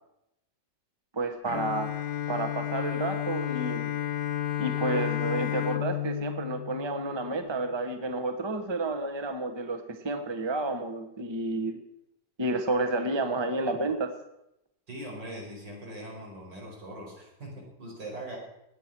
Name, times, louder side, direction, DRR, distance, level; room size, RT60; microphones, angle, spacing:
voice 1, 1.1-3.9 4.6-11.8 12.4-14.1, right 2 dB, 15° right, 6 dB, 1.2 m, -30 dB
Bowed string instrument, 1.5-7.6, left 12 dB, 60° left, 1.2 m, -32 dB
voice 2, 14.9-18.4, right 1 dB, 80° right, -2 dB, 6.0 m, -41 dB
17.5 x 10.0 x 6.2 m, 0.83 s
omnidirectional pair, 1.9 m